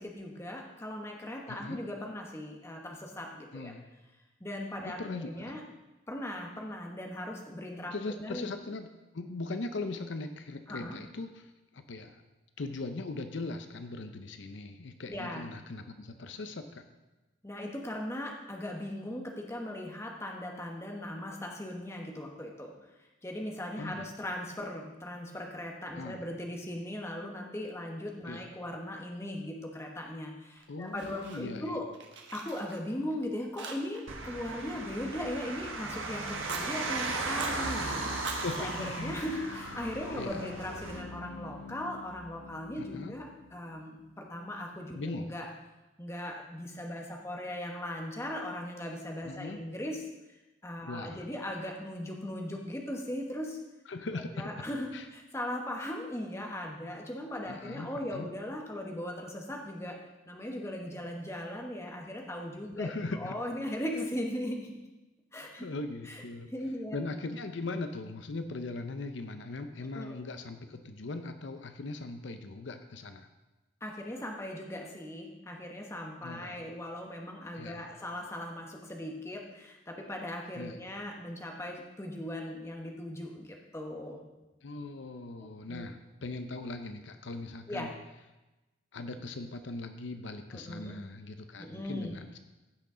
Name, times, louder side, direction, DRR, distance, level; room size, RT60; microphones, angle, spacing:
voice 1, 0.0-3.7 4.4-5.6 6.1-8.5 10.7-11.0 15.1-15.5 17.4-22.7 23.2-31.9 32.3-45.5 46.0-53.6 54.3-64.7 65.3-65.7 66.0-66.2 66.5-67.0 69.9-70.2 73.8-84.2 85.7-85.9 87.7-87.9 90.5-90.9 91.6-92.2, left 1 dB, 15° left, 1 dB, 1.1 m, -39 dB
voice 2, 1.5-1.8 3.5-3.8 4.8-5.5 7.9-8.9 9.1-12.2 12.6-16.8 23.8-24.1 25.9-26.2 28.3-28.5 30.7-31.8 38.4-39.2 40.1-40.5 42.8-43.1 44.9-45.3 49.2-49.6 50.9-51.2 53.9-54.5 54.9-55.1 57.5-58.3 62.8-63.3 65.6-66.5 66.9-73.3 76.2-76.7 77.5-77.9 80.6-80.8 84.6-87.9 88.9-92.4, left 3 dB, 70° left, 8 dB, 0.6 m, -39 dB
Fire, 30.6-31.7 31.9-33.2 33.6-34.1 34.4-35.8 36.3-36.7 37.2-37.6 38.1-39.7, right 4 dB, 65° right, 1.3 m, -43 dB
sound 1, 34.1-41.0, right 3 dB, 85° right, 1.4 m, -37 dB
sound 2, 37.5-44.3, left 3 dB, 90° left, 0.9 m, -46 dB
16.0 x 6.2 x 3.8 m, 1.1 s
head